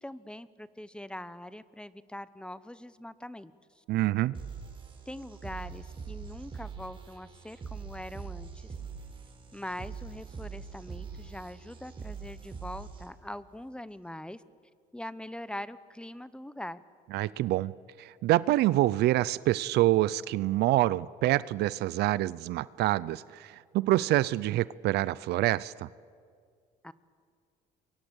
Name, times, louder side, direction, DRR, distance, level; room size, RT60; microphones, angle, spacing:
voice 1, 0.0-3.8 5.1-8.7 9.5-14.4 14.9-16.8 26.8-26.9, left 1 dB, 5° left, 16 dB, 0.9 m, -42 dB
voice 2, 3.9-4.3 17.1-17.7 18.0-25.9, right 16 dB, 75° right, 20 dB, 0.6 m, -26 dB
sound 1, 4.3-13.3, right 6 dB, 30° right, 4.2 m, -43 dB
27.5 x 23.0 x 8.1 m, 2.1 s
cardioid pair, 110°, 17 cm